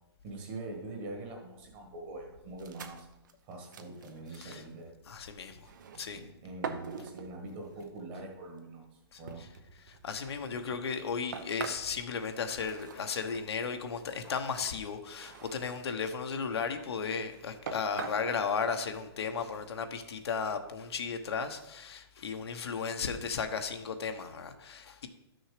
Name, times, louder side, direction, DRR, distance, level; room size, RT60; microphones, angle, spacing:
voice 1, 0.2-3.1 3.5-4.9 6.1-8.9 9.2-9.5, right 2 dB, 25° right, 1 dB, 1.6 m, -43 dB
sound 1, 2.6-4.7 5.5-6.2 6.6-7.9 8.6-8.7 9.3-13.6 14.2-15.8 16.3-16.9 17.3-17.4 17.7-18.3, right 6 dB, 45° right, 0.8 m, -44 dB
voice 2, 5.1-5.6 6.0-6.2 9.1-9.5 9.9-25.1, left 5 dB, 70° left, 6 dB, 1.1 m, -35 dB
12.0 x 6.3 x 5.0 m, 0.96 s
hypercardioid pair, 175°, 14 cm